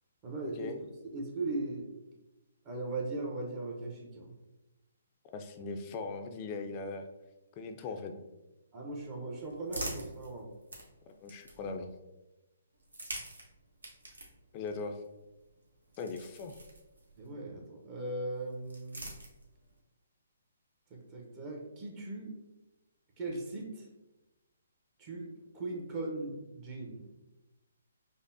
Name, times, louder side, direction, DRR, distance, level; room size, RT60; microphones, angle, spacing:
voice 1, 0.2-1.9 2.6-4.3 8.7-10.5 17.2-19.0 20.9-22.3 23.2-23.9 25.0-25.3 25.5-27.0, right 2 dB, 30° right, -1 dB, 0.7 m, -38 dB
voice 2, 5.3-7.0 7.6-8.2 11.2-11.9 14.5-15.0 16.0-16.6, left 4 dB, 30° left, 6 dB, 0.4 m, -39 dB
sound 1, 8.9-11.9 12.7-17.3 18.3-19.8, right 1 dB, 90° right, 1.0 m, -46 dB
5.2 x 2.0 x 2.6 m, 1.0 s
hypercardioid pair, 145°, 0 cm